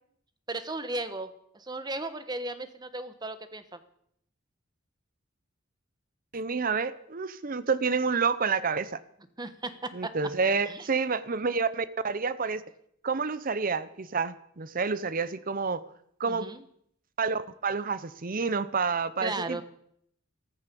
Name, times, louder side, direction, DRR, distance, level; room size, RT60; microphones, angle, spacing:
voice 1, 0.5-3.8 9.4-10.1 10.4-10.9 16.3-16.7 19.2-19.6, right 2 dB, 20° right, 11 dB, 1.2 m, -36 dB
voice 2, 6.3-9.0 9.9-12.6 13.0-15.8 16.2-16.5 17.2-19.6, right 5 dB, 45° right, 14 dB, 0.8 m, -29 dB
15.0 x 13.5 x 6.9 m, 0.70 s
head